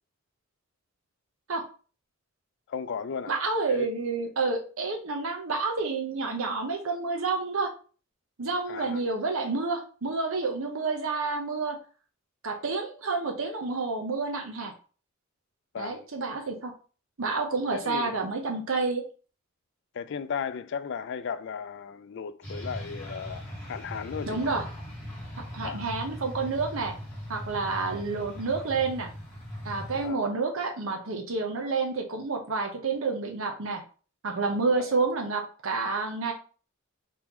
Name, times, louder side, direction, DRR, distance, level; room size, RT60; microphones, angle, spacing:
voice 1, 2.7-3.3 3.7-3.9 8.7-9.0 15.7-16.1 17.7-18.2 19.9-24.5 25.6-25.9 29.9-30.2 34.8-35.0, left 6 dB, 60° left, 0.3 m, -36 dB
voice 2, 3.3-7.7 8.4-11.8 12.4-14.7 15.8-16.7 17.2-19.0 24.3-24.6 25.5-26.9 27.3-29.1 29.6-33.8 34.2-36.3, right 4 dB, 85° right, 0.8 m, -29 dB
sound 1, 22.4-30.1, equal, 10° left, 1.5 m, -40 dB
4.3 x 3.0 x 3.6 m
head